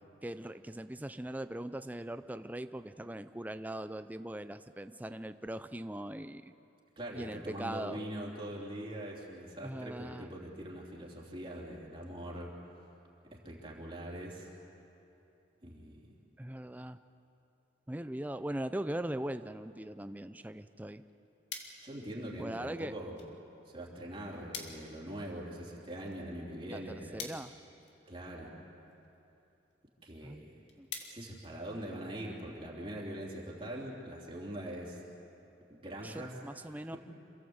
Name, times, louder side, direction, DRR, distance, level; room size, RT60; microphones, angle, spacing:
voice 1, 0.2-6.5 7.2-8.0 9.6-10.3 16.4-17.0 17.9-21.0 22.4-22.9 26.7-27.5 30.2-30.5 30.8-30.9 36.0-37.0, right 1 dB, 10° right, 11 dB, 0.5 m, -40 dB
voice 2, 7.0-12.5 13.3-14.5 15.6-16.0 21.8-23.2 23.6-27.2 28.1-28.5 30.0-30.5 31.0-35.0 35.7-36.3 36.7-37.0, right 1 dB, 30° right, -3 dB, 3.3 m, -42 dB
sound 1, 20.9-32.2, left 5 dB, 70° left, 2.3 m, -51 dB
27.5 x 15.5 x 8.0 m, 2.9 s
head